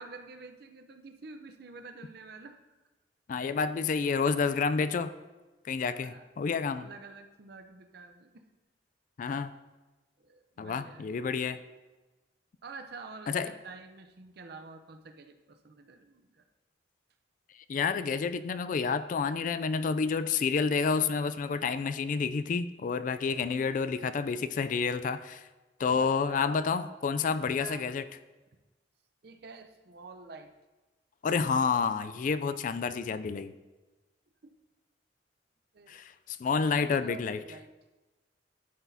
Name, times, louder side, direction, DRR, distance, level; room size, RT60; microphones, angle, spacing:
voice 1, 0.0-2.8 6.0-6.2 6.7-8.4 10.2-11.1 12.6-16.4 23.3-23.4 25.9-26.5 27.5-27.9 29.2-30.5 34.4-34.5 35.7-36.0 36.6-37.7, right 3 dB, 60° right, 7 dB, 0.6 m, -48 dB
voice 2, 3.3-5.1 5.6-6.9 9.2-9.5 10.6-11.6 13.3-13.5 17.7-25.5 25.8-28.0 31.2-33.5 35.9-37.4, left 5 dB, 45° left, 13 dB, 0.3 m, -29 dB
12.0 x 6.1 x 2.7 m, 1.2 s
head